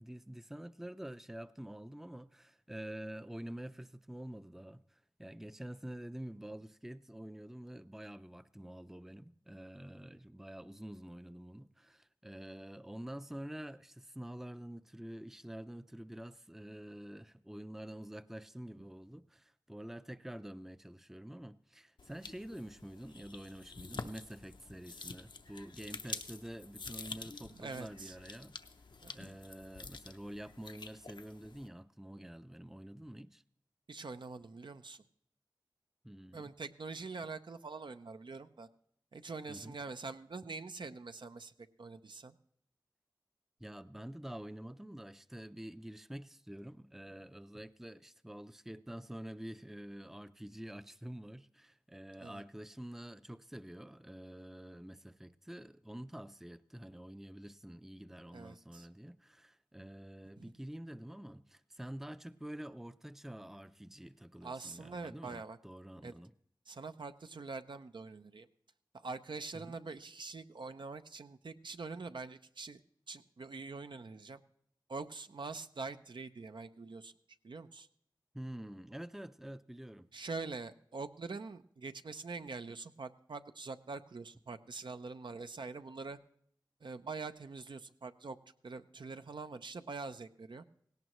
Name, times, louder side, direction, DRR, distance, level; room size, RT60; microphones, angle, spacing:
voice 1, 0.0-28.6 29.1-33.4 36.0-36.5 39.5-39.8 43.6-66.3 69.5-69.8 78.3-80.1, right 1 dB, 5° right, 0.5 m, -47 dB
sound 1, 22.0-31.7, left 4 dB, 70° left, 0.7 m, -48 dB
voice 2, 27.5-28.2 29.0-29.2 33.9-35.0 36.3-38.7 39.1-41.5 41.8-42.3 52.2-52.4 58.3-58.9 60.4-60.5 64.4-65.6 66.0-66.1 66.7-68.5 68.9-72.8 73.1-74.4 74.9-77.1 77.4-77.9 80.1-86.2 86.8-88.4 88.6-90.6, right 4 dB, 75° right, 0.6 m, -44 dB
17.5 x 17.5 x 3.1 m
wide cardioid pair, 75°, 8 cm